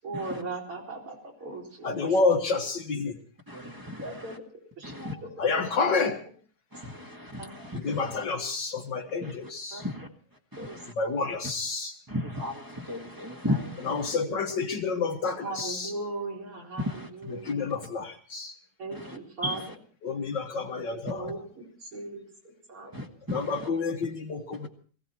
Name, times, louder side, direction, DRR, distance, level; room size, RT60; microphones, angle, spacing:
voice 1, 0.0-2.2 4.0-5.9 6.9-7.0 7.4-7.5 9.7-9.8 10.6-11.3 15.4-16.9 17.1-17.7 18.8-19.6 20.8-22.3 22.7-22.9, right 2 dB, 85° right, 0 dB, 4.9 m, -39 dB
voice 2, 1.8-3.2 5.4-6.2 7.8-9.8 11.0-11.9 13.9-15.9 17.4-18.5 20.0-21.3 23.3-24.7, left 4 dB, 60° left, 5 dB, 1.8 m, -29 dB
voice 3, 3.5-4.4 4.8-5.2 6.7-8.2 9.2-10.1 10.5-10.9 12.1-14.2 16.8-17.5 18.9-19.7 22.9-23.7 24.5-24.7, left 1 dB, 10° right, 4 dB, 1.4 m, -36 dB
20.0 x 16.0 x 4.4 m, 0.43 s
omnidirectional pair, 2.4 m